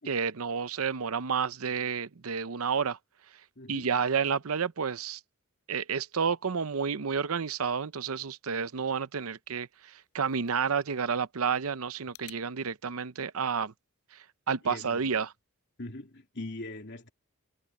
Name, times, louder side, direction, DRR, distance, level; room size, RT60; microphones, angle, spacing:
voice 1, 0.1-3.0 3.7-5.2 5.7-13.7 14.1-15.3, right 6 dB, 75° right, 0.7 m, -30 dB
voice 2, 3.6-3.9 14.6-15.3 15.8-17.1, left 2 dB, 50° left, 3.3 m, -41 dB
sound 1, 9.8-12.4, left 13 dB, 80° left, 6.2 m, -57 dB
head